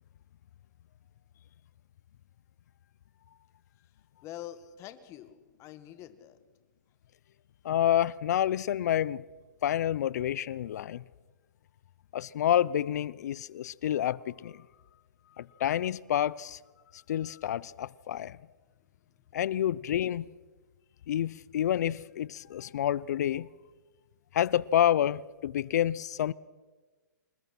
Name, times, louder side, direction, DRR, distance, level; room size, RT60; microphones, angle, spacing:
voice 1, 4.2-6.4, left 12 dB, 30° left, 1.9 m, -45 dB
voice 2, 7.6-9.2 9.6-11.0 12.1-14.6 15.4-16.6 16.9-18.4 19.3-20.3 21.1-23.5 24.3-26.3, left 11 dB, 60° left, 0.6 m, -28 dB
27.0 x 21.5 x 6.0 m
hypercardioid pair, 130°, 10 cm